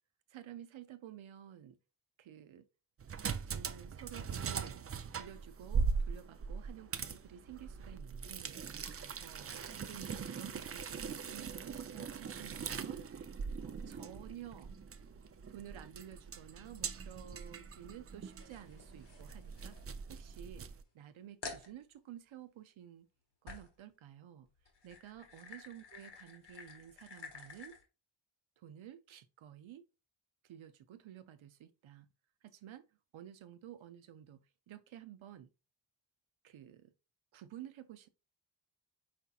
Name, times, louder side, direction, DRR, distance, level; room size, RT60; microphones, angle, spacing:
voice 1, 0.3-1.8 2.2-2.7 3.5-4.8 5.1-13.1 13.6-14.7 15.5-19.8 20.1-20.7 20.9-23.1 23.4-24.5 24.8-27.8 28.6-29.8 30.4-32.1 32.4-32.9 33.1-35.5 36.4-36.9 37.3-38.1, right 11 dB, 90° right, 0.6 m, -52 dB
sound 1, 3.0-20.8, right 5 dB, 35° right, 0.4 m, -41 dB
sound 2, 18.4-20.5 20.9-21.0 21.4-21.7 23.5-23.8 24.6-27.8, left 4 dB, 65° left, 1.4 m, -51 dB
5.0 x 4.2 x 2.3 m
wide cardioid pair, 85°, 46 cm